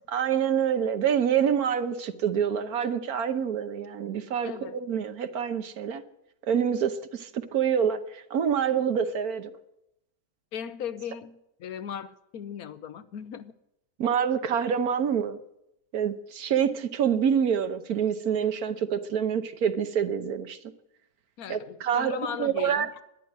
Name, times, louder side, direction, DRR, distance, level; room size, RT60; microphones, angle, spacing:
voice 1, 0.1-4.5 4.8-6.0 6.5-9.5 14.0-15.4 15.9-20.6 21.5-22.9, right 8 dB, 70° right, 1.4 m, -26 dB
voice 2, 4.4-4.8 10.5-13.5 21.4-23.0, left 8 dB, 70° left, 1.2 m, -37 dB
13.0 x 10.5 x 9.2 m
omnidirectional pair, 1.7 m